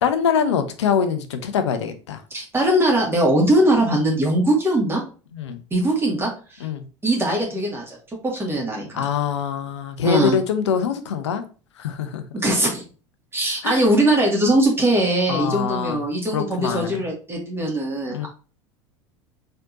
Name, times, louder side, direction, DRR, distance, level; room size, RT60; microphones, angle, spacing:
voice 1, 0.0-2.2 5.3-5.6 6.6-6.8 8.9-11.4 11.8-12.2 13.6-13.8 15.3-16.0 16.3-17.0 18.1-18.3, left 7 dB, 70° left, 0.7 m, -24 dB
voice 2, 2.3-5.0 5.7-6.6 7.0-7.8 8.3-9.1 10.0-10.4 12.3-12.8 13.3-18.3, right 1 dB, 15° right, 2.1 m, -20 dB
4.3 x 3.8 x 2.8 m
figure-of-eight pair, 75°, 15 cm